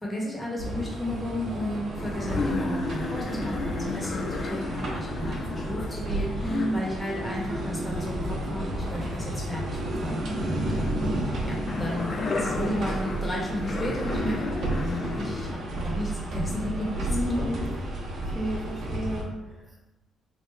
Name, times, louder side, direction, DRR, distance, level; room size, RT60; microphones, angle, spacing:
voice 1, 0.0-11.1 11.4-14.7 15.1-17.1 17.4-17.7, left 1 dB, 15° left, -4 dB, 1.2 m, -34 dB
sound 1, 0.6-19.2, right 1 dB, 65° right, 0.8 m, -32 dB
sound 2, 2.0-9.7 10.0-15.5 16.0-16.2, left 3 dB, 45° left, 0.4 m, -34 dB
voice 2, 6.4-6.8 17.1-17.7 18.2-19.9, right 1 dB, 15° right, -1 dB, 0.7 m, -32 dB
3.4 x 2.4 x 3.3 m, 0.97 s
cardioid pair, 90°, 0 cm